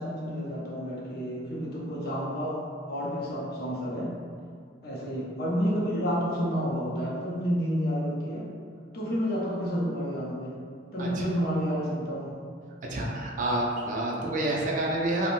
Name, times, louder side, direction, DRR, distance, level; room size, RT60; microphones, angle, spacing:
voice 1, 0.0-2.6 2.9-4.1 4.8-8.5 8.9-10.6 10.9-12.4, equal, 55° left, -5 dB, 0.6 m, -30 dB
voice 2, 12.9-15.3, right 1 dB, 45° right, -2 dB, 0.4 m, -28 dB
2.5 x 2.1 x 3.0 m, 2.1 s
head